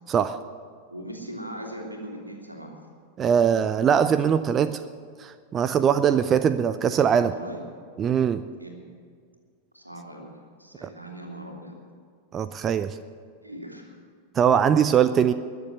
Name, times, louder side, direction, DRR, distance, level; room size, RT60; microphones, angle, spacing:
voice 1, 0.9-2.7 7.2-7.7 8.6-8.7 9.7-10.3 10.6-11.8 13.4-13.9, right 1 dB, 85° right, 1 dB, 2.4 m, -39 dB
voice 2, 3.2-4.8 5.2-7.3 8.0-8.4 10.8-10.9 12.3-13.0 14.3-15.3, right 8 dB, 25° right, 13 dB, 0.5 m, -21 dB
21.0 x 7.1 x 7.8 m, 2.1 s
figure-of-eight pair, 90°, 0 cm